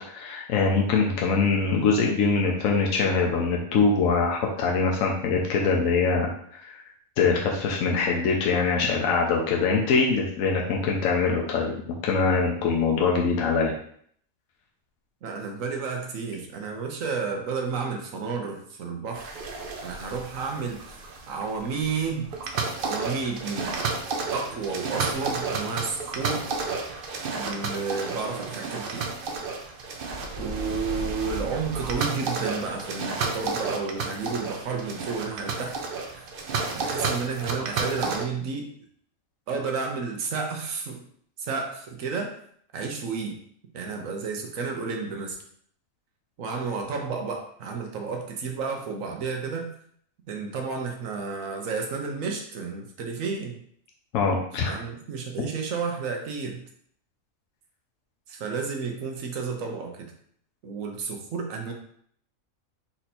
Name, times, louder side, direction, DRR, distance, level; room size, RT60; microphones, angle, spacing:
voice 1, 0.1-6.3 6.6-6.7 7.2-13.7 54.1-54.8, left 4 dB, 75° left, -1 dB, 1.1 m, -23 dB
voice 2, 15.2-19.4 19.8-22.4 22.8-23.8 24.3-26.5 27.4-29.1 30.3-35.8 36.1-36.3 36.7-38.7 39.5-41.0 41.4-42.4 42.7-43.4 43.7-45.4 46.4-49.7 50.3-53.6 54.6-56.6 58.3-60.1 60.6-61.7, right 5 dB, 75° right, 2 dB, 1.2 m, -31 dB
sound 1, 19.1-38.2, right 4 dB, 55° right, 0.6 m, -32 dB
4.3 x 2.7 x 4.2 m, 0.63 s
omnidirectional pair, 1.4 m